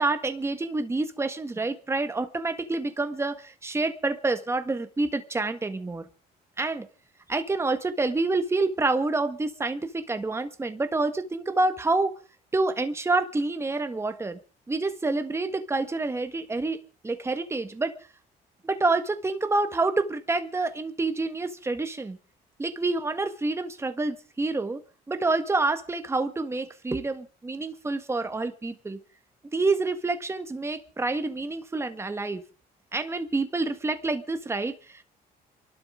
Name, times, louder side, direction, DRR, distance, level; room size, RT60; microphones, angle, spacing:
voice 1, 0.0-6.1 6.6-6.9 7.3-12.1 12.5-14.4 14.7-17.9 18.6-22.2 22.6-24.8 25.1-29.0 29.5-32.4 32.9-35.0, right 3 dB, 15° right, 9 dB, 1.5 m, -28 dB
29.0 x 12.0 x 3.7 m, 0.37 s
cardioid pair, 110°, 17 cm